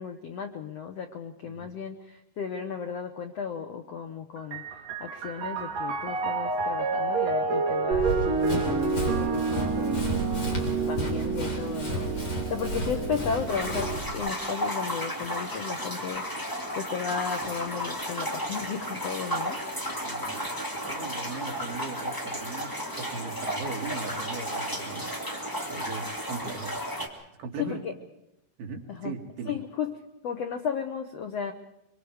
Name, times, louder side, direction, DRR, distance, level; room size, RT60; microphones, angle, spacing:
voice 1, 0.0-4.7 5.0-16.2 16.7-19.6 27.6-27.9 28.9-29.1 29.4-30.0 30.2-31.5, left 6 dB, 90° left, 6 dB, 1.4 m, -34 dB
voice 2, 1.4-1.8 20.0-20.5 20.9-25.1 25.7-26.7 27.4-27.8 28.6-29.6, right 4 dB, 75° right, 2 dB, 4.0 m, -39 dB
Piano, 4.4-14.0, right 4 dB, 45° right, 3.4 m, -29 dB
Run, 7.9-14.1, equal, 30° left, 4.6 m, -32 dB
sound 1, 13.5-27.1, equal, 10° left, 1.3 m, -33 dB
24.5 x 24.5 x 4.9 m, 0.86 s
omnidirectional pair, 4.6 m